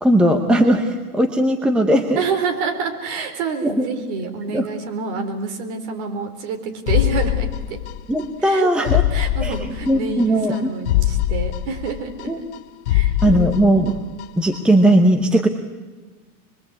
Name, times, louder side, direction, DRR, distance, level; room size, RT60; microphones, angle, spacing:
voice 1, 0.0-2.2 3.6-3.8 4.5-4.7 8.1-9.0 9.4-9.6 9.9-10.7 12.3-12.4 13.2-14.0 14.4-15.5, right 1 dB, ahead, 5 dB, 0.9 m, -17 dB
voice 2, 2.1-7.8 8.4-8.7 9.1-12.3 12.9-13.8, right 5 dB, 45° right, 5 dB, 4.6 m, -28 dB
sound 1, 6.9-8.2 8.5-8.6 8.9-10.2 10.5-10.6 10.9-12.6 12.9-14.2 14.5-14.6, left 14 dB, 45° left, 1.0 m, -22 dB
25.5 x 23.0 x 8.4 m, 1.3 s
supercardioid pair, 160°, 46 cm